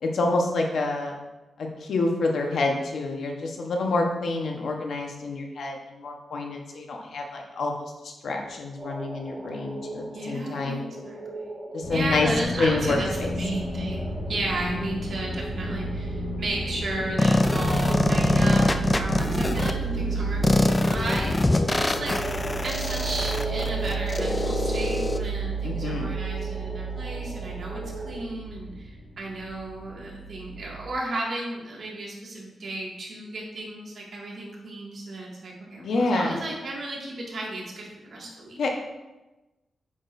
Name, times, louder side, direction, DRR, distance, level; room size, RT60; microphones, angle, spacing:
voice 1, 0.0-1.2 1.6-7.7 8.0-10.8 11.7-12.3 12.6-13.3 25.6-26.1 35.8-36.4 38.6-38.7, left 3 dB, 70° left, 1 dB, 1.2 m, -27 dB
sound 1, 8.8-28.2, right 1 dB, 10° right, 1.2 m, -38 dB
voice 2, 10.1-11.6 11.9-22.3 22.6-38.6, right 2 dB, 55° right, -4 dB, 2.1 m, -34 dB
sound 2, 11.8-30.8, right 3 dB, 50° left, 1.7 m, -32 dB
sound 3, 17.2-19.7 20.4-25.2, left 2 dB, 20° left, 0.4 m, -23 dB
8.7 x 6.3 x 2.7 m, 1.1 s
wide cardioid pair, 125°, 0 cm